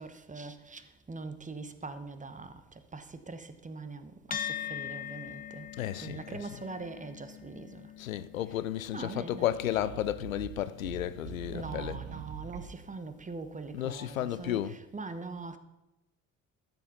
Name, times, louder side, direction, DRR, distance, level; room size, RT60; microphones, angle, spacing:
voice 1, 0.0-5.7 6.0-7.8 8.9-9.5 11.5-15.6, right 3 dB, 20° right, 1.2 m, -42 dB
sound 1, 4.3-13.0, left 9 dB, 20° left, 0.6 m, -44 dB
voice 2, 5.8-6.4 8.0-12.0 13.7-14.8, left 12 dB, 90° left, 0.5 m, -33 dB
sound 2, 9.2-12.9, right 10 dB, 75° right, 0.8 m, -44 dB
13.0 x 7.5 x 5.7 m
hypercardioid pair, 55°, 39 cm